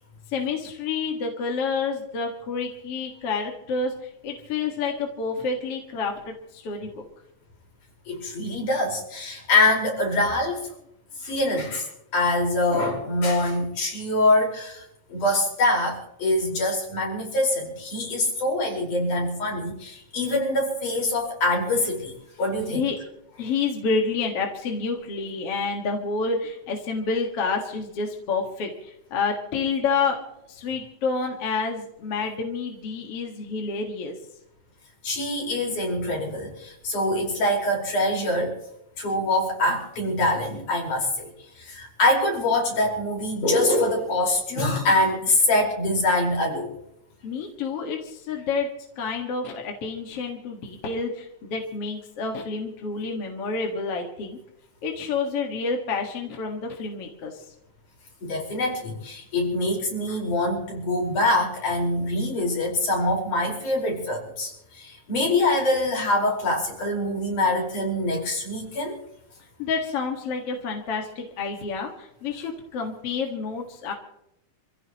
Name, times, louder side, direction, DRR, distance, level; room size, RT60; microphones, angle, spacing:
voice 1, 0.3-7.0 22.7-23.0 23.4-30.2 30.5-34.1 47.2-48.7 49.0-54.4 54.8-57.4 69.6-73.9, left 4 dB, 50° left, 2 dB, 2.6 m, -29 dB
voice 2, 8.1-10.7 11.2-14.8 15.1-22.9 35.0-38.5 39.0-46.7 58.2-68.9, left 1 dB, 75° left, 0 dB, 6.3 m, -24 dB
27.0 x 16.0 x 3.0 m, 0.79 s
omnidirectional pair, 3.6 m